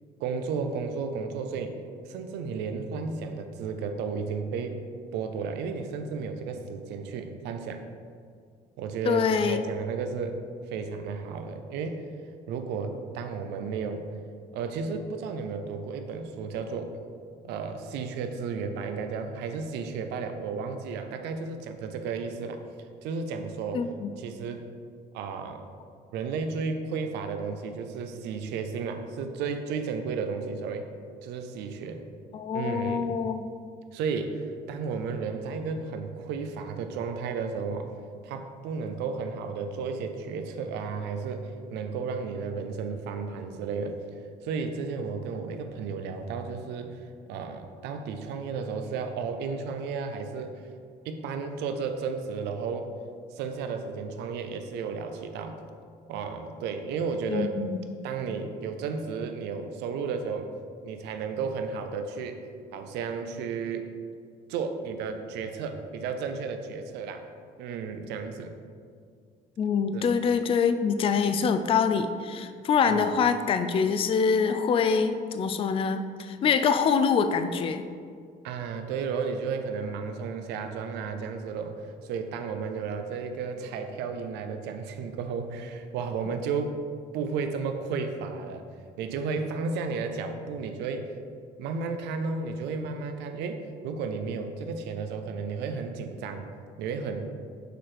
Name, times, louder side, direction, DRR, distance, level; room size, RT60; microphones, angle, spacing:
voice 1, 0.2-1.8 2.1-4.8 5.1-7.8 8.8-10.4 10.7-12.0 12.5-14.1 14.5-17.0 17.4-22.6 23.0-23.9 24.2-24.7 25.1-25.6 26.1-30.9 31.2-32.0 32.5-33.1 33.9-37.9 38.2-44.0 44.4-50.7 51.0-52.9 53.3-55.6 56.1-57.5 58.0-60.5 60.8-62.4 62.7-63.9 64.5-67.2 67.6-68.5 69.9-70.1 72.9-73.1 78.4-86.8 87.1-88.6 89.0-91.1 91.6-96.5 96.8-97.3, right 5 dB, 85° right, 6 dB, 0.6 m, -33 dB
voice 2, 9.1-9.6 23.7-24.1 32.3-33.5 57.3-57.8 69.6-77.8, left 6 dB, 35° left, 9 dB, 0.4 m, -25 dB
6.7 x 3.3 x 5.8 m, 2.2 s
cardioid pair, 110°, 17 cm